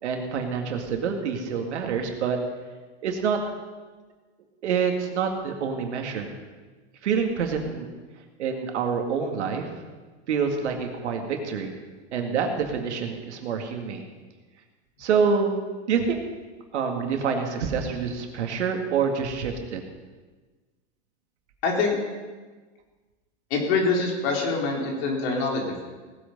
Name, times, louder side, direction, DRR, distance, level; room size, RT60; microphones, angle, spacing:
voice 1, 0.0-2.4 3.0-3.4 4.6-6.3 7.0-7.9 8.4-9.7 10.3-11.7 12.1-14.0 15.0-15.6 15.9-16.2 16.7-19.8, right 6 dB, 80° right, 3 dB, 2.2 m, -26 dB
voice 2, 21.6-22.0 23.5-25.8, left 4 dB, 65° left, 0 dB, 3.8 m, -25 dB
18.5 x 8.3 x 5.4 m, 1.3 s
hypercardioid pair, 110°, 34 cm